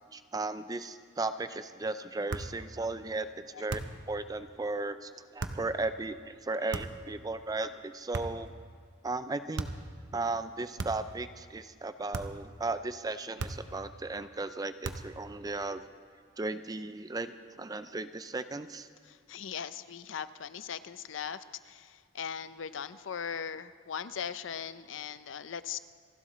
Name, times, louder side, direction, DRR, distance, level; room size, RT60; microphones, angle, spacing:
voice 1, 0.1-3.8 4.1-8.5 9.0-9.7 10.1-15.8 16.4-18.9, right 3 dB, 20° right, 11 dB, 0.4 m, -36 dB
sound 1, 2.3-2.6 3.7-4.1 5.4-5.7 6.7-7.1 8.1-8.5 9.6-9.9 10.8-11.2 12.1-12.5 13.4-13.8 14.8-15.2, right 3 dB, 60° right, 0.8 m, -37 dB
voice 2, 19.1-25.8, left 7 dB, 70° left, 14 dB, 0.5 m, -39 dB
28.0 x 12.0 x 3.1 m, 2.1 s
head